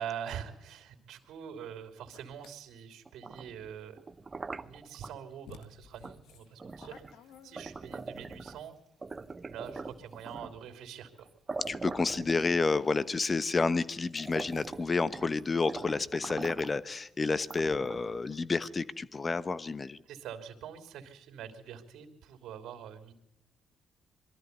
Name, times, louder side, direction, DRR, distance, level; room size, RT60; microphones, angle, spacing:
voice 1, 0.0-4.0 4.6-8.7 9.4-11.3 20.0-23.1, right 8 dB, 80° right, 7 dB, 3.1 m, -44 dB
sound 1, 2.1-2.6 4.8-4.9 5.5-8.0, left 7 dB, 85° left, 1.6 m, -54 dB
sound 2, 3.1-5.1 6.0-6.2 6.6-8.7 9.0-10.7 11.2-11.3 11.5-13.0 13.6-13.7 14.1-15.4 15.7-16.8 17.4-18.2, right 3 dB, 25° right, 0.8 m, -43 dB
voice 2, 11.7-20.0, left 4 dB, 30° left, 16 dB, 1.0 m, -30 dB
23.0 x 13.5 x 9.5 m, 0.81 s
cardioid pair, 90°, 0 cm